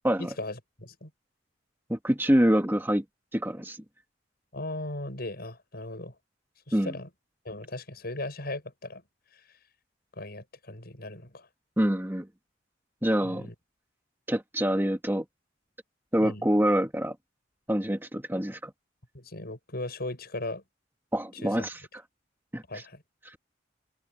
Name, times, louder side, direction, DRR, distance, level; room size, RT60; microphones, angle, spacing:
voice 1, 0.2-1.1 4.5-6.2 6.7-7.1 7.5-9.0 10.1-11.5 13.2-13.5 16.2-16.5 19.1-20.6 21.3-21.7 22.7-23.0, left 2 dB, 55° left, 7.1 m, -37 dB
voice 2, 1.9-3.0 3.3-3.8 6.7-6.9 11.8-12.3 13.0-13.5 14.3-15.3 16.1-17.2 17.7-18.7 21.1-21.7 22.5-22.8, equal, 10° right, 1.8 m, -26 dB
open air
head